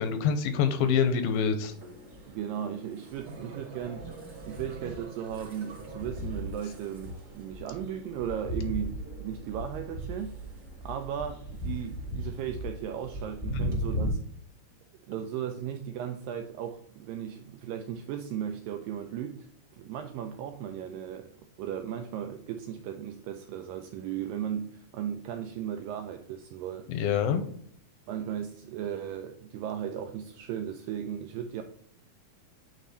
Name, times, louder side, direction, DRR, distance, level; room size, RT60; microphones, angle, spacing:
voice 1, 0.0-1.7 26.9-27.5, left 7 dB, 80° left, 9 dB, 2.3 m, -26 dB
sound 1, 1.7-14.1, equal, 30° right, 1.8 m, -38 dB
voice 2, 2.3-4.1 4.5-10.3 10.8-14.2 15.1-21.3 21.6-26.9 28.1-31.6, right 9 dB, 80° right, 6 dB, 2.0 m, -36 dB
sound 2, 3.0-6.8, right 4 dB, 50° right, 2.9 m, -46 dB
9.1 x 3.5 x 4.1 m, 0.65 s
omnidirectional pair, 4.4 m